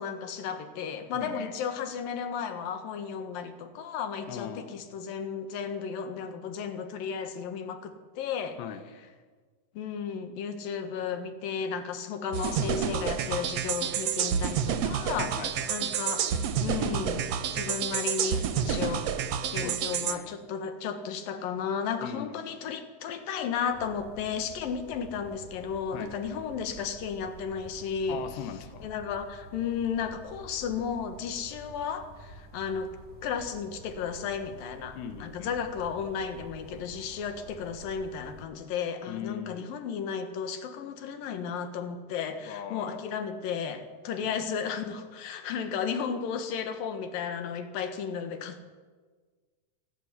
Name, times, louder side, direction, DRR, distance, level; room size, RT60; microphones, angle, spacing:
voice 1, 0.0-8.6 9.7-15.4 15.7-16.3 16.6-17.2 17.5-19.1 19.5-28.2 28.8-33.0 33.2-48.6, left 6 dB, 65° left, 8 dB, 3.0 m, -34 dB
voice 2, 1.1-1.5 4.3-4.8 8.6-8.9 15.1-15.7 19.6-20.4 22.0-22.4 25.9-26.2 28.1-28.9 35.0-35.6 39.1-39.7 42.5-43.1 44.3-44.4, left 9 dB, 85° left, 9 dB, 3.6 m, -40 dB
sound 1, 12.3-20.2, right 8 dB, 80° right, 1.4 m, -29 dB
sound 2, 23.7-38.4, right 3 dB, 50° right, 5.8 m, -49 dB
26.5 x 12.5 x 9.9 m, 1.5 s
omnidirectional pair, 4.7 m